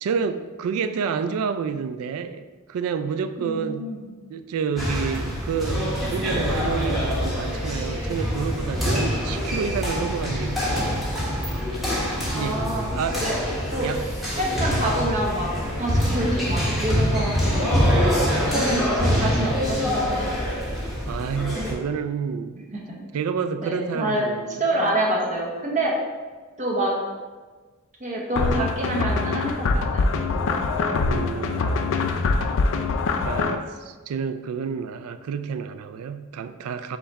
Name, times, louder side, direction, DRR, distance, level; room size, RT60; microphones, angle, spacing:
voice 1, 0.0-4.0 4.3-11.1 12.3-12.6 12.9-13.2 13.8-14.0 21.1-22.7 23.1-24.9 31.1-31.7 33.2-37.0, right 6 dB, 80° right, 10 dB, 0.3 m, -29 dB
voice 2, 3.4-4.1 12.3-12.8 13.2-13.4 13.7-13.9 14.3-15.5 15.8-20.2 22.7-23.0 23.6-24.3 24.6-25.9 26.6-26.9 28.0-30.6 31.2-32.3, right 1 dB, 35° right, -2 dB, 0.8 m, -27 dB
sound 1, 4.8-21.7, equal, ahead, 1.1 m, -25 dB
sound 2, 28.4-33.6, left 3 dB, 65° left, 0.4 m, -23 dB
5.6 x 2.3 x 4.0 m, 1.4 s
head